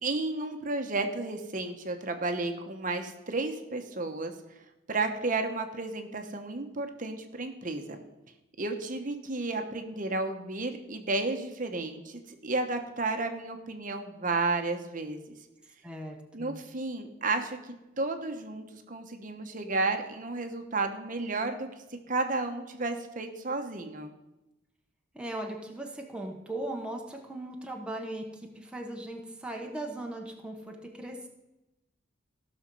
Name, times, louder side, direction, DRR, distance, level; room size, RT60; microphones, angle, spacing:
voice 1, 0.0-4.3 4.9-8.0 8.6-15.3 16.3-21.7 22.1-24.1, right 3 dB, 45° right, 6 dB, 1.1 m, -32 dB
voice 2, 15.8-16.6 25.1-31.3, right 1 dB, 5° right, 1 dB, 1.0 m, -38 dB
15.5 x 6.4 x 5.4 m, 0.96 s
head